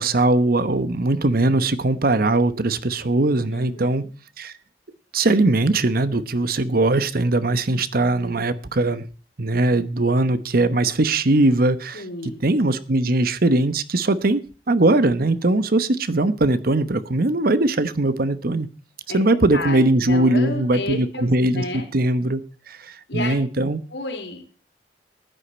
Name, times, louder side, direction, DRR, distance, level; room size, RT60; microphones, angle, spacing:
voice 1, 0.0-4.0 4.4-4.5 5.1-9.1 9.4-14.4 14.7-18.7 19.1-22.4 22.7-23.8, right 2 dB, 55° right, 1.0 m, -20 dB
voice 2, 3.5-4.1 11.9-12.4 19.1-19.2 19.5-21.3 21.5-21.9 23.1-23.4 23.9-24.5, left 2 dB, 80° left, 3.8 m, -31 dB
15.0 x 10.0 x 4.3 m
head